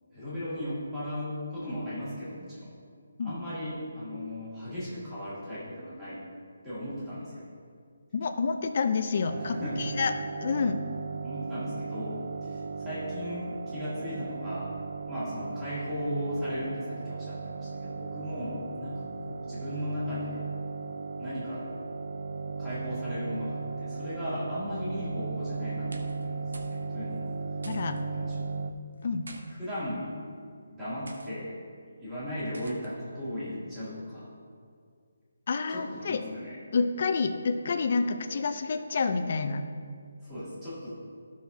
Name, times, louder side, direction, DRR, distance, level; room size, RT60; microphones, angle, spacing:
voice 1, 0.1-2.7 3.2-6.2 6.6-7.5 9.4-9.9 11.2-14.7 15.1-20.4 21.2-21.7 22.5-27.3 28.2-28.5 29.6-30.1 30.7-31.5 32.0-34.3 35.7-36.6 40.2-41.0, left 1 dB, 5° right, -13 dB, 2.1 m, -36 dB
voice 2, 8.1-10.1 10.4-10.8 27.7-28.0 29.0-29.3 35.5-36.2 36.7-39.6, left 4 dB, 35° left, 7 dB, 0.5 m, -28 dB
sound 1, 9.3-28.7, right 4 dB, 60° right, 0.4 m, -36 dB
sound 2, 25.7-26.3 26.5-26.8 27.1-27.2 27.6-28.0 29.0-29.4 30.2-30.4 31.1-31.3 32.5-32.9, right 2 dB, 90° right, 1.2 m, -47 dB
14.5 x 6.3 x 2.7 m, 2.2 s
hypercardioid pair, 180°, 0 cm